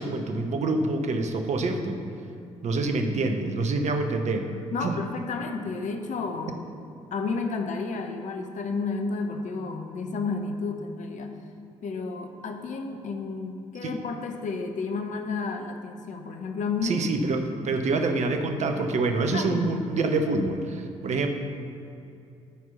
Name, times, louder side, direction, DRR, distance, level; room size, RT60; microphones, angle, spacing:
voice 1, 0.0-2.0 2.6-4.5 4.8-4.9 13.8-13.9 16.8-21.3, right 3 dB, 45° right, 6 dB, 0.9 m, -26 dB
voice 2, 4.7-6.6 7.1-11.4 11.8-17.0 19.3-19.9, left 4 dB, 50° left, 5 dB, 0.9 m, -31 dB
10.0 x 4.6 x 5.5 m, 2.7 s
figure-of-eight pair, 50°, 16 cm